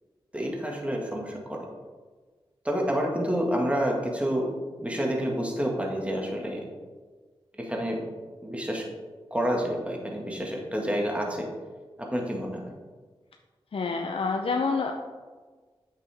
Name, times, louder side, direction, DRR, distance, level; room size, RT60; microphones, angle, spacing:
voice 1, 0.3-1.6 2.6-4.5 4.8-6.6 7.6-8.0 8.4-8.8 9.3-11.5 12.0-12.7, equal, 10° right, -1 dB, 1.9 m, -28 dB
voice 2, 13.7-14.9, left 4 dB, 65° left, 2 dB, 0.6 m, -27 dB
8.6 x 6.1 x 3.5 m, 1.4 s
cardioid pair, 45°, 10 cm